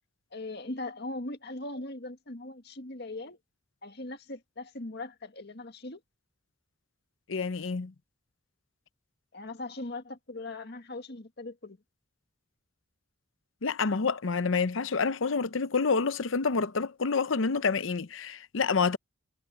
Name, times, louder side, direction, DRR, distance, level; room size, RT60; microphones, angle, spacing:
voice 1, 0.3-3.4 3.8-6.0 9.3-11.8, left 2 dB, 55° left, 1.9 m, -40 dB
voice 2, 7.3-7.9 13.6-19.0, left 4 dB, 80° left, 0.7 m, -28 dB
head